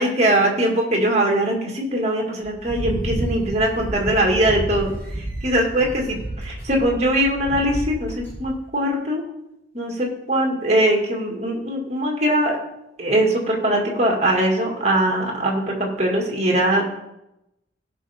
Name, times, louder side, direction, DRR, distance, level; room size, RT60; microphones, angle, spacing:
voice 1, 0.0-4.9 5.2-9.2 9.7-12.6 13.0-16.8, right 1 dB, 35° right, 0 dB, 2.0 m, -21 dB
sound 1, 2.4-8.4, right 1 dB, 10° left, 2.9 m, -30 dB
17.0 x 5.9 x 3.5 m, 0.89 s
head